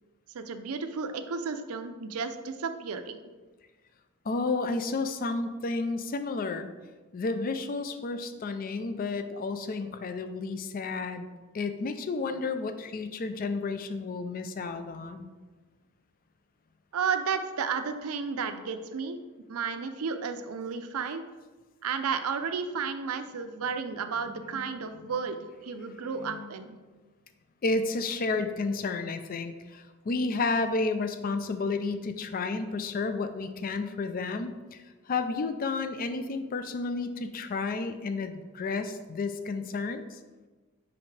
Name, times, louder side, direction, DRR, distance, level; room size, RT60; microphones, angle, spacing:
voice 1, 0.3-3.2 16.9-19.2 19.5-21.2 21.8-25.4 25.6-26.8, right 5 dB, 80° right, 8 dB, 0.5 m, -32 dB
voice 2, 4.3-6.7 7.1-11.3 11.5-15.3 24.5-24.8 26.2-26.5 27.6-40.2, left 3 dB, 40° left, 9 dB, 0.4 m, -31 dB
5.7 x 5.2 x 3.2 m, 1.3 s
head